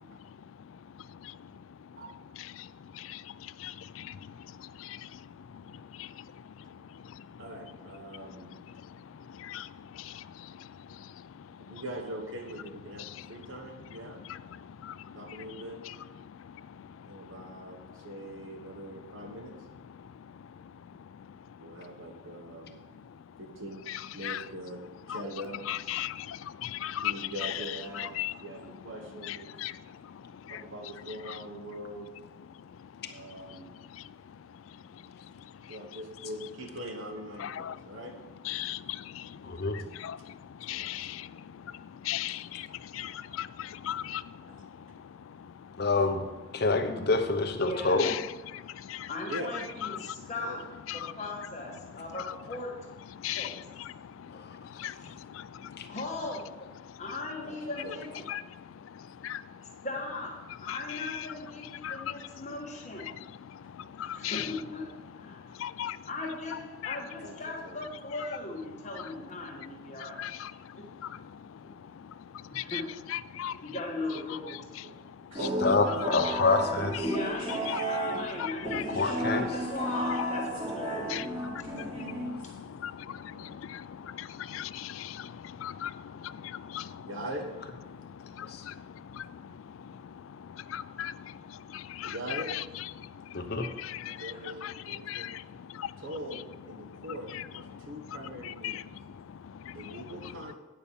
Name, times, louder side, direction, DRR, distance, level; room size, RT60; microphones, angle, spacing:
voice 1, 0.2-2.0 2.3-7.5 8.1-11.8 13.0-13.3 13.9-14.0 14.3-15.6 15.9-16.0 16.2-18.1 19.9-22.1 23.0-23.2 23.9-24.4 25.1-25.2 25.7-27.5 27.9-28.4 29.2-30.6 31.3-31.4 32.6-35.8 37.4-37.9 38.4-45.8 48.0-48.3 48.5-49.4 49.8-50.3 50.9-51.1 52.2-52.3 53.1-56.0 56.8-57.0 58.3-59.9 60.7-61.3 61.7-62.4 63.0-64.5 65.3-66.1 66.8-67.0 69.0-69.1 69.4-69.5 69.9-72.8 73.1-73.6 75.0-75.4 76.1-76.3 77.7-77.8 78.4-78.9 81.0-87.1 87.9-92.6 92.9-94.3 94.6-96.0 96.8-97.0 97.3-97.4 97.7-100.3, left 11 dB, 85° left, 0.3 m, -40 dB
voice 2, 7.4-8.5 11.6-14.2 15.1-15.8 17.1-19.5 21.6-22.8 23.4-23.9 24.1-24.8 25.1-25.6 27.0-29.5 30.5-32.1 33.1-33.7 35.7-38.1 40.7-41.0 44.5-44.6 49.3-49.5 50.4-50.6 57.4-57.6 57.8-58.0 67.2-67.8 74.8-75.0 75.3-75.9 76.5-76.6 83.3-83.5 87.0-87.5 92.0-92.5 94.0-95.3 96.0-98.8 99.7-100.6, right 1 dB, 85° right, 1.4 m, -41 dB
voice 3, 39.4-39.8 45.8-46.2 46.5-48.1 54.3-54.5 55.8-55.9 75.6-76.9 78.6-79.5 88.4-88.6 93.3-93.7, left 3 dB, 55° left, 0.9 m, -27 dB
voice 4, 47.6-48.0 49.1-50.6 50.9-52.7 53.3-53.7 55.0-55.1 55.9-56.4 57.0-58.3 59.8-63.1 64.0-65.5 66.1-70.2 70.8-70.9 71.6-71.7 72.5-72.9 73.6-74.6 77.0-81.2 94.3-94.5, left 2 dB, 35° left, 1.5 m, -38 dB
sound 1, 75.3-82.7, equal, 25° right, 3.0 m, -33 dB
9.0 x 5.6 x 7.0 m
head